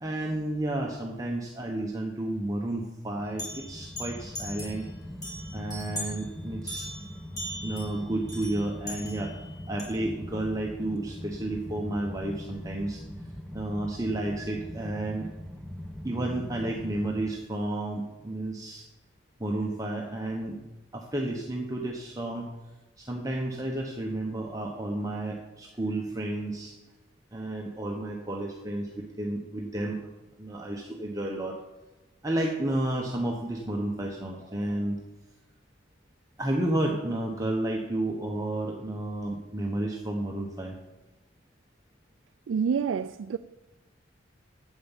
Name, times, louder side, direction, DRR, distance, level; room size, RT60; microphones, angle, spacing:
voice 1, 0.0-4.8 5.5-6.9 7.6-9.4 9.7-13.0 13.5-15.3 16.0-18.9 19.4-20.6 20.9-22.5 23.0-26.8 27.3-30.0 30.4-31.6 32.2-35.0 36.4-40.8, right 1 dB, 15° right, 1.0 m, -31 dB
sound 1, 3.1-17.3, equal, 5° left, 0.9 m, -41 dB
sound 2, 3.4-4.8 5.2-6.2 6.7-9.8, equal, 20° left, 3.0 m, -39 dB
voice 2, 42.5-43.4, right 6 dB, 90° right, 0.4 m, -27 dB
9.3 x 8.1 x 7.3 m
head